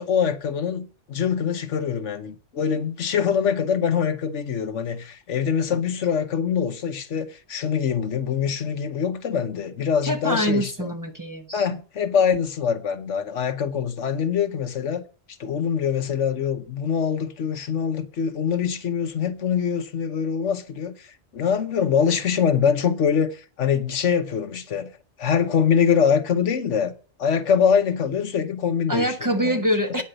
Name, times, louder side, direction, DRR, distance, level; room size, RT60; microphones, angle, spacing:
voice 1, 0.0-10.9 11.5-15.0 15.4-24.9 25.2-26.9 27.2-29.7, left 7 dB, 85° left, 1.3 m, -24 dB
voice 2, 10.0-11.7 28.9-30.0, equal, 15° right, 1.2 m, -24 dB
9.5 x 5.6 x 7.8 m
omnidirectional pair, 1.2 m